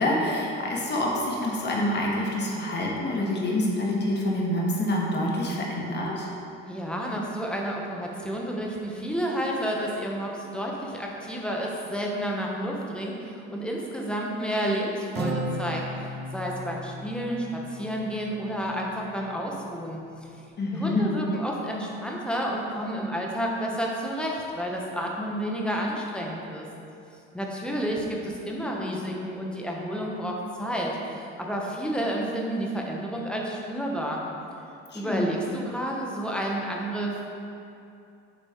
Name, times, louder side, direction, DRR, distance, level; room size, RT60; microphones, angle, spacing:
voice 1, 0.0-6.3 20.6-21.1 34.9-35.3, left 1 dB, 35° left, -2 dB, 1.4 m, -27 dB
voice 2, 6.7-20.3 20.7-26.7 27.3-34.2 34.9-37.2, equal, 5° left, -2 dB, 1.0 m, -30 dB
Acoustic guitar, 15.1-18.8, right 1 dB, 35° right, 0.7 m, -35 dB
7.2 x 4.0 x 3.6 m, 2.6 s
supercardioid pair, 90°, 29 cm